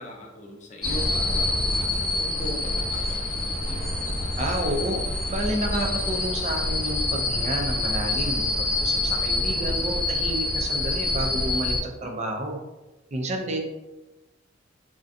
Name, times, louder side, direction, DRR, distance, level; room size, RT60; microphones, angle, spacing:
voice 1, 0.0-3.9, equal, 40° left, 0 dB, 0.5 m, -40 dB
sound 1, 0.8-11.8, left 2 dB, ahead, 1.0 m, -26 dB
voice 2, 4.4-5.0 5.3-12.6 13.1-13.6, right 1 dB, 35° right, 2 dB, 0.4 m, -30 dB
2.5 x 2.2 x 2.5 m, 1.1 s
head